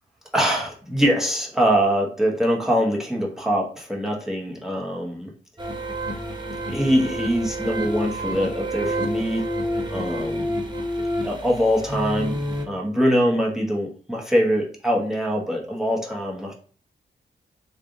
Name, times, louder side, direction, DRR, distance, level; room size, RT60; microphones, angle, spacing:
voice 1, 0.3-5.3 6.7-9.5 9.9-10.6 11.2-12.4 12.6-16.5, equal, ahead, -2 dB, 1.1 m, -23 dB
sound 1, 5.6-12.7, equal, 25° right, 0.9 m, -28 dB
3.4 x 2.4 x 3.8 m, 0.41 s
cardioid pair, 75°, 19 cm